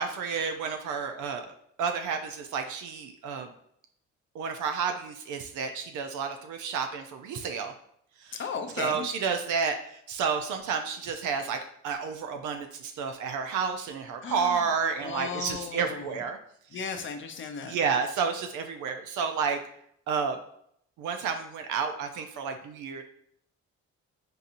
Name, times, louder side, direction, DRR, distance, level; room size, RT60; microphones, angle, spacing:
voice 1, 0.0-1.5 1.8-3.5 4.3-7.7 8.2-8.4 8.8-11.6 11.8-16.4 16.7-16.8 17.6-19.6 20.1-20.4 21.0-23.0, right 6 dB, 80° right, 6 dB, 0.5 m, -30 dB
voice 2, 8.3-9.1 14.2-14.7 15.0-16.2 16.7-17.8, left 6 dB, 40° left, 7 dB, 0.5 m, -36 dB
3.9 x 2.8 x 2.5 m, 0.69 s
cardioid pair, 90°, 30 cm